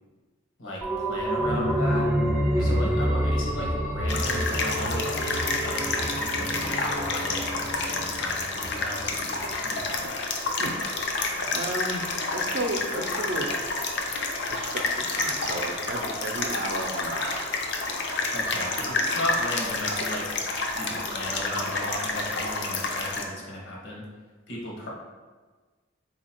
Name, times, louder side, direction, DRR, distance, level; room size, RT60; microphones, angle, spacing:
voice 1, 0.6-2.1 2.6-10.1 18.3-20.3 20.7-24.0 24.5-24.9, left 1 dB, 80° left, -3 dB, 1.1 m, -36 dB
sound 1, 0.8-10.2 10.5-10.6, equal, 10° right, 0.5 m, -28 dB
sound 2, 4.1-23.2, left 3 dB, 60° left, 0.5 m, -29 dB
voice 2, 11.1-12.0 12.3-13.6 14.5-17.5, right 1 dB, 60° right, 3 dB, 0.5 m, -33 dB
3.9 x 2.8 x 4.3 m, 1.4 s
head